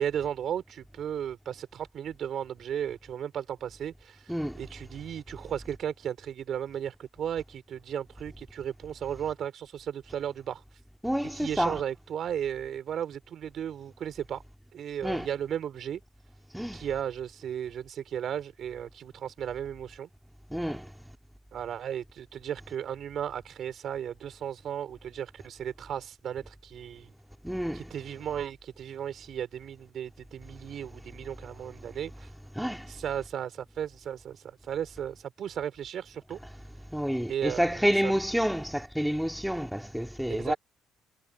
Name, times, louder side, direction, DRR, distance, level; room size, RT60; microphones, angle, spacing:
voice 1, 0.0-4.2 4.5-10.6 11.3-14.4 14.7-16.0 16.7-20.1 21.5-27.1 27.7-32.3 32.9-36.4 37.3-38.2 40.3-40.6, right 9 dB, 60° right, 4.3 m, -35 dB
voice 2, 4.3-4.7 11.0-11.8 15.0-15.3 16.5-16.9 20.5-20.9 27.4-27.9 32.5-32.9 36.9-40.5, equal, ahead, 2.0 m, -29 dB
cardioid pair, 105°, 0 cm